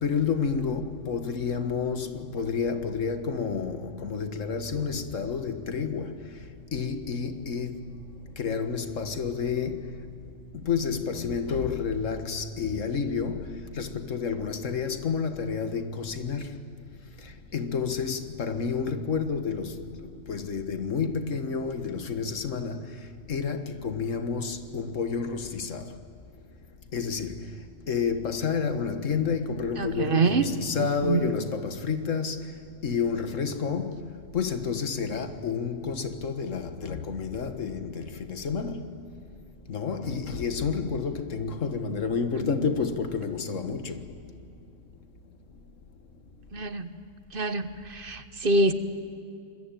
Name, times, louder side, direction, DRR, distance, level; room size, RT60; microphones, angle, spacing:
voice 1, 0.0-6.2 6.7-7.9 8.4-9.9 10.5-16.5 17.5-19.8 20.3-22.9 23.3-25.9 26.9-27.5 27.9-32.5 32.8-38.9 39.7-44.0, left 5 dB, 90° left, 1.8 m, -30 dB
voice 2, 29.8-30.5 30.8-31.2 42.3-42.7 46.5-47.0 47.3-48.7, right 3 dB, 50° right, 1.2 m, -26 dB
26.5 x 22.0 x 9.1 m
omnidirectional pair, 1.3 m